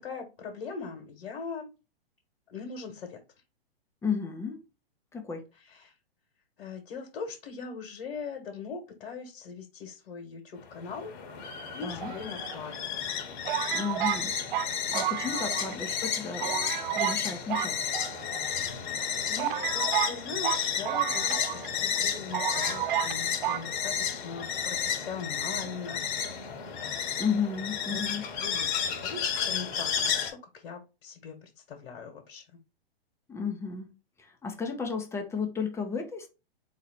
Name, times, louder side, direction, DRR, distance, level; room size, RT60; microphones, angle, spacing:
voice 1, 0.0-1.7 2.5-3.2 5.5-5.9 6.6-11.1 11.7-13.1 18.9-26.0 27.9-28.0 28.4-32.4, left 5 dB, 65° left, 1.4 m, -41 dB
voice 2, 4.0-4.6 5.1-5.4 11.8-12.1 13.7-14.4 14.9-17.8 27.2-28.2 33.3-33.9 34.2-36.3, left 5 dB, 10° left, 0.7 m, -33 dB
sound 1, 10.6-30.3, left 8 dB, 50° left, 1.2 m, -32 dB
sound 2, 12.0-12.8 13.5-15.8 16.0-16.1 16.4-17.2 17.5-18.5 19.0-19.1 19.4-21.7 22.0-22.1 22.3-23.2 23.4-23.7, right 12 dB, 55° right, 0.4 m, -31 dB
4.0 x 2.8 x 4.1 m
hypercardioid pair, 120°, 31 cm